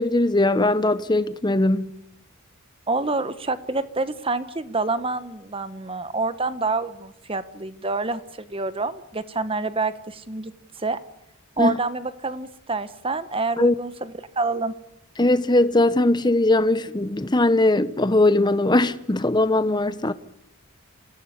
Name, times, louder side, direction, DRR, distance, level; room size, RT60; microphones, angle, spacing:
voice 1, 0.0-1.9 11.6-11.8 13.6-13.7 15.2-20.1, left 2 dB, 20° left, 0.9 m, -20 dB
voice 2, 2.9-10.5 10.8-11.0 11.6-14.7, right 3 dB, 25° right, 1.2 m, -27 dB
27.0 x 16.5 x 9.7 m
head